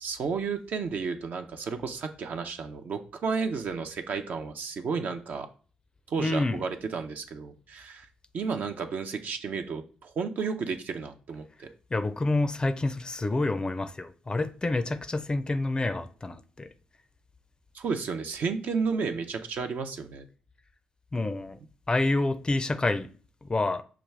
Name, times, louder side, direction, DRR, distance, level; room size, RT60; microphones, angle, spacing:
voice 1, 0.0-5.5 6.1-8.1 8.3-11.7 17.7-20.3, right 5 dB, 60° right, 0.6 m, -32 dB
voice 2, 6.2-6.6 11.9-16.7 21.1-21.6 21.9-23.1 23.4-23.8, left 2 dB, 25° left, 0.5 m, -28 dB
5.9 x 2.3 x 3.2 m
hypercardioid pair, 45°, 3 cm